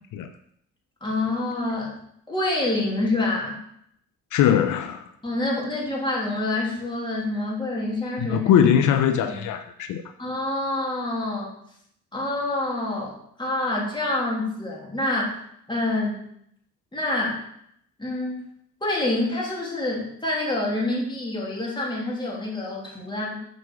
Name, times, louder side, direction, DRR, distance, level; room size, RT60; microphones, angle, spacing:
voice 1, 1.0-2.0 2.3-3.6 5.2-8.4 9.1-9.5 10.2-11.5 12.1-15.4 15.7-16.3 16.9-17.4 18.0-18.4 18.8-23.4, left 2 dB, 15° left, -4 dB, 3.0 m, -27 dB
voice 2, 4.3-5.0 8.2-10.0, left 9 dB, 80° left, 8 dB, 0.6 m, -21 dB
7.0 x 4.8 x 6.2 m, 0.72 s
cardioid pair, 90°, 30 cm